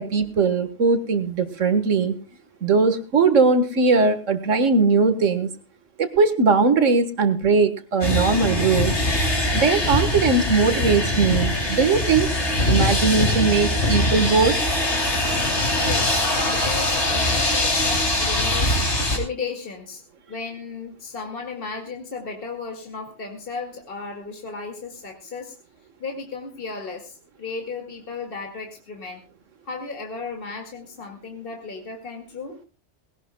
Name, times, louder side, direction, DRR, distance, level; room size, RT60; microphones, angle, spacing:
voice 1, 0.0-2.2 2.6-5.5 6.0-8.9 9.5-12.3 12.7-14.6, right 4 dB, 85° right, 10 dB, 1.8 m, -20 dB
sound 1, 8.0-19.2, left 1 dB, 65° left, 3.4 m, -22 dB
voice 2, 15.8-18.9 19.1-20.0 20.3-25.6 26.0-29.2 29.6-32.6, left 4 dB, 45° left, 4 dB, 2.4 m, -35 dB
20.0 x 17.5 x 2.3 m, 0.31 s
omnidirectional pair, 1.3 m